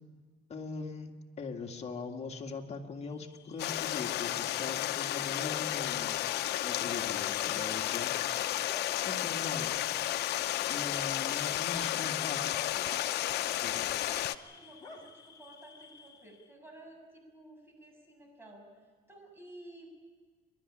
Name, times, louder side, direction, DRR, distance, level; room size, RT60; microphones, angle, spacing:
voice 1, 0.5-6.2 6.6-8.1 9.0-9.7 10.7-12.7 13.6-13.9, left 4 dB, 40° left, 3 dB, 2.1 m, -41 dB
Bark / Cricket, 3.2-16.5, left 4 dB, 25° left, 2.9 m, -51 dB
Stream, 3.6-14.4, left 14 dB, 75° left, 0.8 m, -32 dB
voice 2, 13.6-19.9, right 1 dB, 15° right, 1 dB, 7.4 m, -53 dB
28.5 x 12.5 x 9.9 m, 1.4 s
cardioid pair, 110°, 17 cm